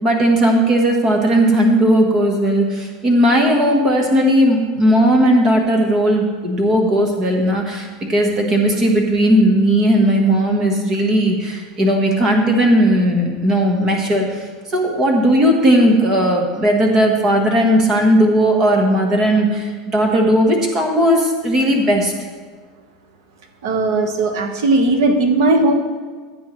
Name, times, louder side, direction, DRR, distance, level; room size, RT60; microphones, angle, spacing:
voice 1, 0.0-14.2 14.7-22.1, equal, 20° right, 2 dB, 1.3 m, -16 dB
voice 2, 23.6-25.7, right 2 dB, 80° right, 5 dB, 1.4 m, -17 dB
15.0 x 8.2 x 3.2 m, 1.5 s
supercardioid pair, 175°, 2 cm